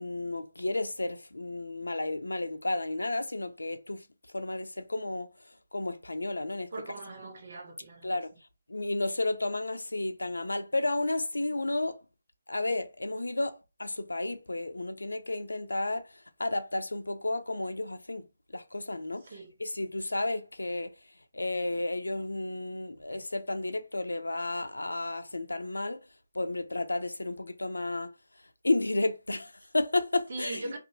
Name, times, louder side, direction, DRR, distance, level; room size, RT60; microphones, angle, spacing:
voice 1, 0.0-4.1 4.3-5.3 5.7-6.9 8.0-8.3 8.7-12.0 12.5-18.2 18.5-20.9 21.3-26.0 26.3-28.1 28.6-30.8, left 2 dB, 85° left, 0.4 m, -32 dB
voice 2, 6.7-8.1 19.3-19.5 30.3-30.8, right 2 dB, 55° right, 0.7 m, -40 dB
2.6 x 2.4 x 2.7 m
figure-of-eight pair, 150°, 0 cm